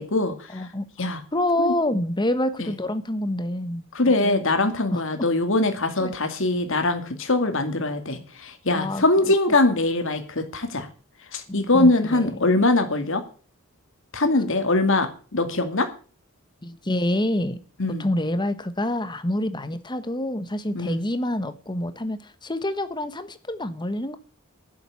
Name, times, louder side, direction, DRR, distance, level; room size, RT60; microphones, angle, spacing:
voice 1, 0.0-0.7 1.0-1.2 1.6-1.7 2.6-2.7 3.9-10.9 11.3-13.2 14.1-15.9 17.8-18.1 20.7-21.0, left 2 dB, 60° left, 2.4 m, -22 dB
voice 2, 0.5-0.9 1.3-3.9 4.2-5.0 6.0-6.1 8.7-9.0 11.5-12.4 16.6-17.6 18.0-24.2, left 1 dB, 20° left, 1.2 m, -27 dB
12.0 x 7.8 x 8.5 m
head